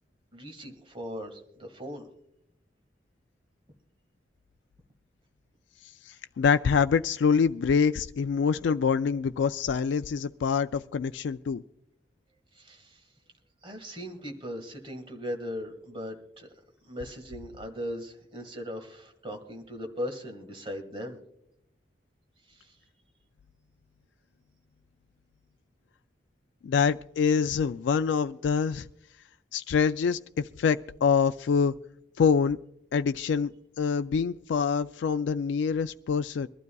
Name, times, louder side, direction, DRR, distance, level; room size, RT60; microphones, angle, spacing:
voice 1, 0.3-2.1 12.5-13.0 13.6-16.5 16.8-21.2 22.5-22.8, equal, 30° right, 1.8 m, -38 dB
voice 2, 6.0-11.6 26.6-28.9 29.5-31.7 32.2-32.6 32.9-33.5 33.8-36.5, left 6 dB, 90° left, 0.3 m, -25 dB
24.0 x 12.0 x 2.3 m
head